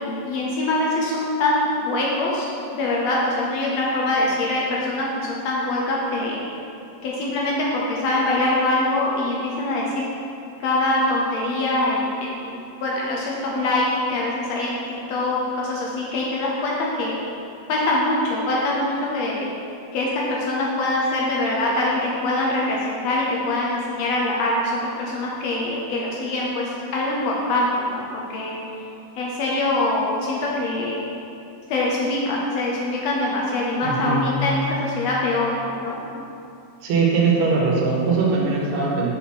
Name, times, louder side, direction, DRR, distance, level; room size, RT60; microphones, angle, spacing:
voice 1, 0.0-2.5 2.7-6.4 7.0-9.9 10.6-14.8 15.1-17.2 17.7-19.5 19.9-28.1 28.3-28.6 29.2-31.0 31.7-36.0, left 2 dB, 70° left, -4 dB, 1.8 m, -23 dB
voice 2, 33.8-34.3 36.8-39.1, right 4 dB, 75° right, -3 dB, 2.2 m, -21 dB
5.7 x 4.9 x 4.5 m, 2.6 s
omnidirectional pair, 3.4 m